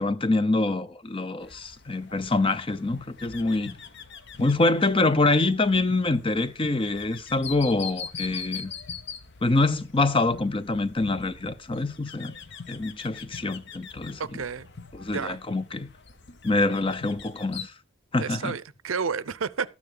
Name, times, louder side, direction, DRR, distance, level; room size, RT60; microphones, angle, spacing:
voice 1, 0.0-3.7 4.4-8.7 9.4-12.3 12.7-14.2 14.9-15.9 16.4-17.7 18.1-18.5, left 2 dB, 25° left, 0.6 m, -25 dB
sound 1, 1.4-17.7, left 6 dB, 50° left, 0.9 m, -42 dB
voice 2, 14.2-14.7 15.1-15.4 18.2-19.7, right 5 dB, 70° right, 0.6 m, -31 dB
13.0 x 9.5 x 3.9 m
head